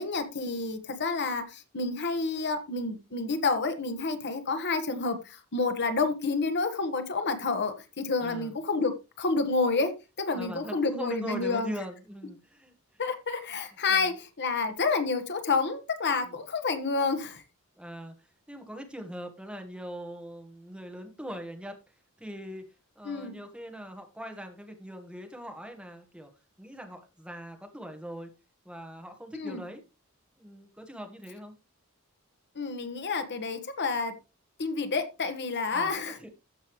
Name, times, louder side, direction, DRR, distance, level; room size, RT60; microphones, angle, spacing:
voice 1, 0.0-11.7 13.0-17.4 23.0-23.4 29.3-29.6 32.5-34.1 34.6-36.3, left 4 dB, 50° left, 9 dB, 1.4 m, -29 dB
voice 2, 8.2-8.5 10.3-12.7 13.9-14.1 16.2-16.3 17.8-18.1 18.5-21.7 22.2-22.6 22.9-26.3 26.6-28.3 28.6-29.8 30.4-31.5 35.7-36.0 36.2-36.3, equal, 5° right, 5 dB, 1.5 m, -41 dB
15.0 x 5.6 x 3.2 m, 0.27 s
head